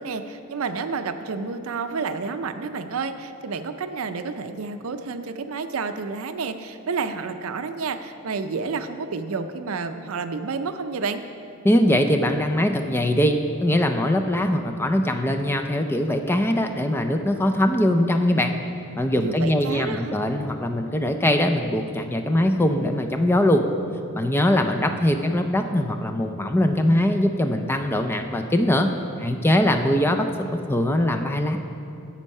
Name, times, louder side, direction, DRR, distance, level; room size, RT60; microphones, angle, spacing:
voice 1, 0.0-11.2 19.2-20.2, right 4 dB, 70° right, 9 dB, 0.5 m, -30 dB
voice 2, 11.6-18.6 18.9-23.6 24.1-28.9 29.2-31.6, left 1 dB, 10° left, 6 dB, 0.4 m, -22 dB
10.0 x 7.3 x 5.4 m, 2.7 s
head